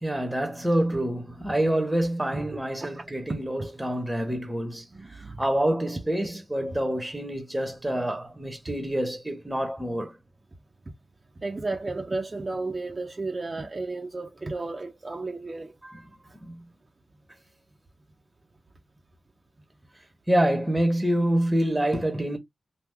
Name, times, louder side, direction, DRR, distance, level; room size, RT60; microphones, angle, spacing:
voice 1, 0.0-4.8 5.4-10.1 15.8-16.0 16.4-16.5 20.3-22.4, right 1 dB, 10° right, 1.3 m, -26 dB
voice 2, 4.9-5.4 11.4-15.8, right 3 dB, 40° right, 0.8 m, -33 dB
3.0 x 2.4 x 3.6 m
cardioid pair, 50°, 0 cm